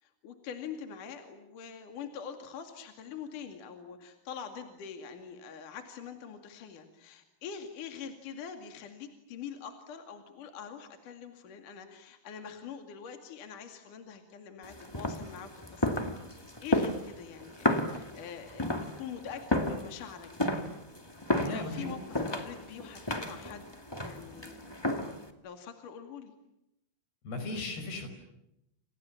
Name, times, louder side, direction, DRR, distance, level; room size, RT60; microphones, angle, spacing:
voice 1, 0.0-16.2 16.6-20.5 21.4-23.7 24.0-24.6 25.4-26.3, left 7 dB, 55° left, 5 dB, 3.6 m, -44 dB
sound 1, 14.6-25.3, left 1 dB, 10° left, 1.1 m, -33 dB
voice 2, 21.4-21.9 27.3-28.1, left 2 dB, 75° left, 7 dB, 7.3 m, -37 dB
29.5 x 28.0 x 7.2 m, 0.86 s
omnidirectional pair, 4.6 m